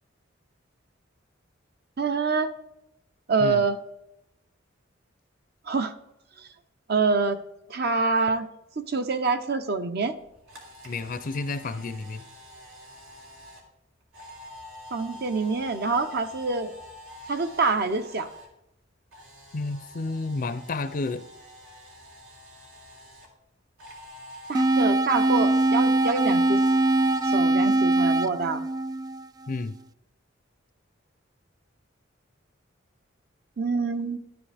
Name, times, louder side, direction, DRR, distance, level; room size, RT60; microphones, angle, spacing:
voice 1, 2.0-2.5 3.3-3.8 5.7-5.9 6.9-7.4 7.7-8.5 8.9-10.2 14.9-16.7 17.3-18.3 24.5-26.6 27.3-28.6 33.6-34.2, right 4 dB, 55° right, 9 dB, 0.8 m, -26 dB
Camera, 10.1-18.5 18.8-23.3 23.8-27.3, left 1 dB, 85° right, 3.1 m, -46 dB
voice 2, 10.8-12.2 19.5-21.2 29.5-29.8, left 3 dB, 45° left, 11 dB, 0.5 m, -31 dB
sound 1, 24.5-29.6, right 2 dB, 20° right, 0.3 m, -22 dB
12.0 x 9.8 x 3.4 m, 0.87 s
head